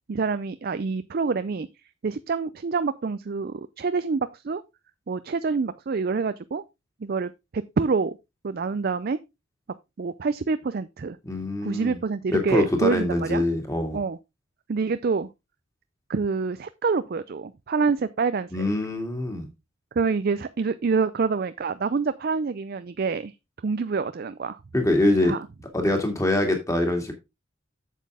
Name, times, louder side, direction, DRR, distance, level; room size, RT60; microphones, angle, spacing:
voice 1, 0.1-1.7 2.0-4.6 5.1-6.6 7.0-8.2 8.4-9.2 10.0-11.2 11.6-13.4 13.9-14.2 14.7-15.3 16.1-18.5 20.0-23.3 23.6-24.6 25.2-25.4, right 4 dB, 45° right, 0.4 m, -26 dB
voice 2, 11.2-12.0 12.3-14.0 18.5-19.5 24.7-25.3 25.7-27.1, left 1 dB, 15° left, 2.1 m, -24 dB
8.3 x 7.4 x 3.5 m
head